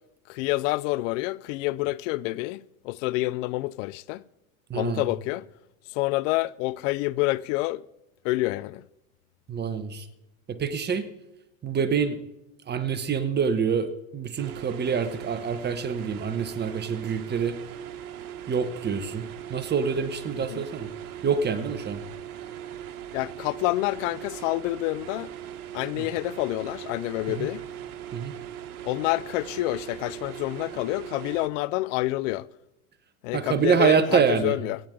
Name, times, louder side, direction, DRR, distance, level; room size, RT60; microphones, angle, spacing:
voice 1, 0.3-4.2 4.7-5.5 5.9-7.8 8.2-8.8 20.3-20.6 23.1-25.3 25.7-27.6 28.8-32.5 33.2-34.8, left 19 dB, 60° left, 0.6 m, -28 dB
voice 2, 4.7-5.0 9.5-10.1 10.5-11.1 11.6-12.2 12.7-17.6 18.5-20.9 21.2-22.0 26.0-26.1 27.3-27.5 28.1-28.3 33.3-34.6, right 6 dB, 25° right, 1.3 m, -26 dB
sound 1, 14.4-31.5, right 10 dB, 85° right, 1.3 m, -40 dB
24.5 x 9.1 x 3.9 m
hypercardioid pair, 110°, 43 cm